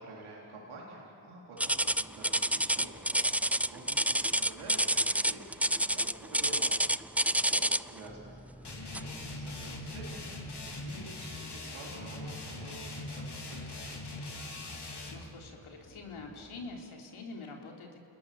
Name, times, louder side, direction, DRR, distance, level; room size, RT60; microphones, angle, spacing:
voice 1, 0.0-13.8, right 2 dB, 85° right, -4 dB, 4.2 m, -49 dB
sound 1, 1.6-16.8, right 1 dB, 15° left, 4.3 m, -57 dB
sound 2, 1.6-8.0 8.9-9.2 9.7-9.9 10.5-10.6, right 1 dB, 5° right, 0.4 m, -28 dB
sound 3, 8.6-15.2, left 2 dB, 55° left, 4.1 m, -41 dB
voice 2, 15.1-18.0, left 3 dB, 80° left, 1 dB, 3.6 m, -45 dB
29.0 x 20.0 x 7.1 m, 2.7 s
cardioid pair, 45°, 48 cm